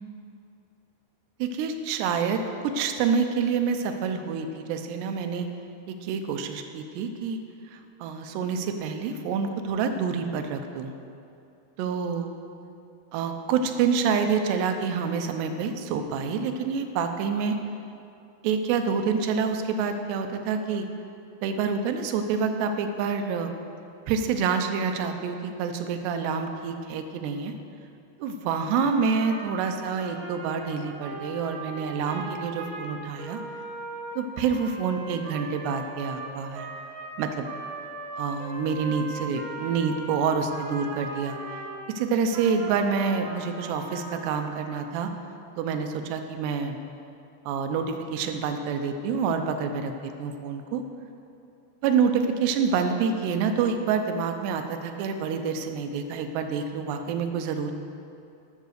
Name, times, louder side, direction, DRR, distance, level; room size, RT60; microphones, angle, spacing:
voice 1, 1.4-5.5 5.9-7.4 7.7-10.9 11.8-12.3 13.1-17.6 18.4-20.9 21.4-23.5 24.1-27.5 28.2-33.4 34.2-36.7 37.2-37.5 38.2-41.4 42.0-45.1 45.6-46.8 47.5-50.8 51.8-57.7, right 6 dB, 90° right, 6 dB, 2.9 m, -27 dB
Trumpet, 28.8-41.8 42.3-44.8, right 3 dB, 65° right, 2.7 m, -39 dB
13.5 x 6.6 x 6.5 m, 2.7 s
omnidirectional pair, 4.8 m